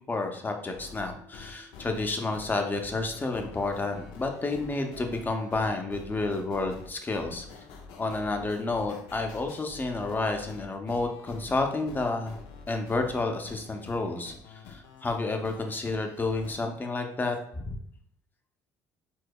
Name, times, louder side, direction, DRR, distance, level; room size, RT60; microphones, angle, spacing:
voice 1, 0.1-7.5 8.0-12.4 12.7-17.8, left 3 dB, 25° left, 4 dB, 0.6 m, -30 dB
sound 1, 0.7-16.6, left 5 dB, 80° left, 0.5 m, -47 dB
4.6 x 2.0 x 2.3 m, 0.65 s
supercardioid pair, 70°, 8 cm